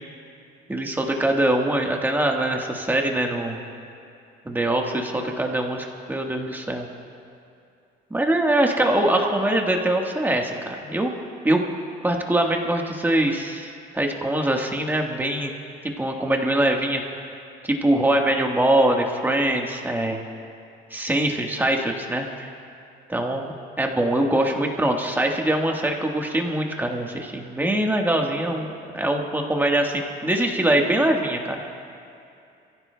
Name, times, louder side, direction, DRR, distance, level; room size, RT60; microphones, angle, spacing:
voice 1, 0.7-3.6 4.4-6.9 8.1-11.1 11.4-11.7 12.0-15.5 16.0-17.0 17.6-20.2 20.9-22.5 23.1-23.4 23.8-28.7 28.9-31.6, right 1 dB, 10° right, 1 dB, 1.4 m, -23 dB
28.0 x 15.5 x 2.3 m, 2.5 s
cardioid pair, 110°, 17 cm